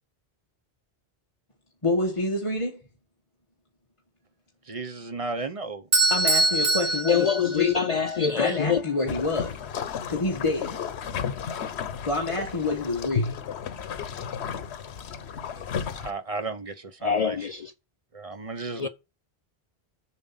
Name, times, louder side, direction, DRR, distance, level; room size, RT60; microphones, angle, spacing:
voice 1, 1.8-2.8 6.1-7.3 7.5-7.7 8.4-9.6 10.1-10.8 12.0-13.3 15.5-15.7, left 2 dB, 30° left, 1.2 m, -27 dB
voice 2, 4.7-5.8 15.9-17.4 18.1-18.9, right 3 dB, 35° right, 0.7 m, -34 dB
Bell / Doorbell, 5.9-8.0, right 2 dB, 65° right, 1.7 m, -23 dB
voice 3, 7.1-8.8 17.0-17.7 18.7-18.9, left 7 dB, 50° left, 0.5 m, -25 dB
sound 1, 9.1-16.1, left 6 dB, 85° left, 1.0 m, -33 dB
7.3 x 5.9 x 5.5 m
omnidirectional pair, 1.1 m